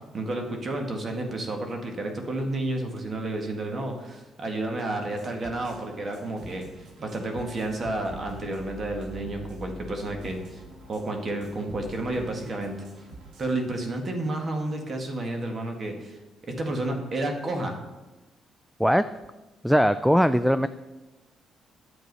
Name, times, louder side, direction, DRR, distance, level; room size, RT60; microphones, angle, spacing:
voice 1, 0.1-6.7 7.0-10.6 10.9-12.7 13.4-17.7, right 2 dB, 40° right, 3 dB, 1.8 m, -31 dB
sound 1, 5.1-13.8, right 2 dB, 80° right, 1.9 m, -45 dB
voice 2, 19.6-20.7, equal, ahead, 13 dB, 0.3 m, -20 dB
9.7 x 7.5 x 5.4 m, 1.1 s
cardioid pair, 90°, 0 cm